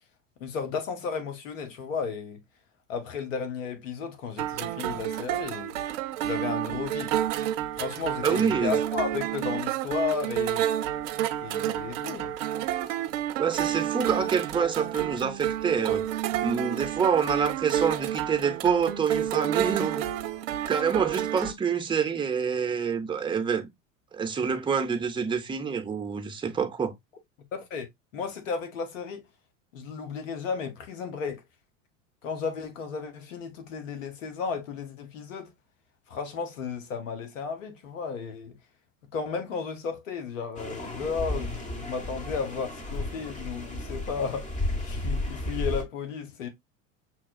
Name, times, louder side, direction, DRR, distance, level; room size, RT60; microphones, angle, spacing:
voice 1, 0.4-2.4 2.9-5.8 6.2-7.2 7.7-10.7 11.4-12.3 27.5-27.9 28.1-29.3 29.7-31.4 32.2-35.5 36.1-38.6 39.1-46.5, left 5 dB, 80° left, 1.0 m, -34 dB
sound 1, 4.4-21.5, right 11 dB, 70° right, 0.6 m, -30 dB
voice 2, 8.2-8.8 13.4-16.1 16.4-20.1 20.7-23.7 24.1-26.9, right 6 dB, 15° right, 0.7 m, -27 dB
sound 2, 40.6-45.8, left 1 dB, 20° left, 1.1 m, -33 dB
5.8 x 2.3 x 2.3 m
hypercardioid pair, 85°, 38 cm